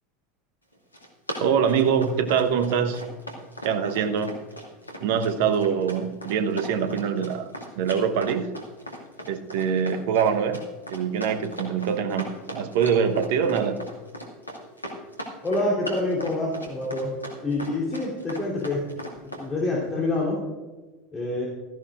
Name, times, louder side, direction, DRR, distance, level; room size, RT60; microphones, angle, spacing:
Run, 0.7-19.5, equal, 85° left, 2.0 m, -38 dB
voice 1, 1.4-3.0 3.6-4.4 5.0-7.5 7.8-8.5 9.2-10.6 10.9-13.8, right 7 dB, 55° right, 8 dB, 1.1 m, -24 dB
voice 2, 15.4-17.1 17.4-18.8 19.2-20.4 21.1-21.4, left 2 dB, 20° left, -5 dB, 3.4 m, -26 dB
15.5 x 14.0 x 2.5 m, 1.3 s
figure-of-eight pair, 75°, 0 cm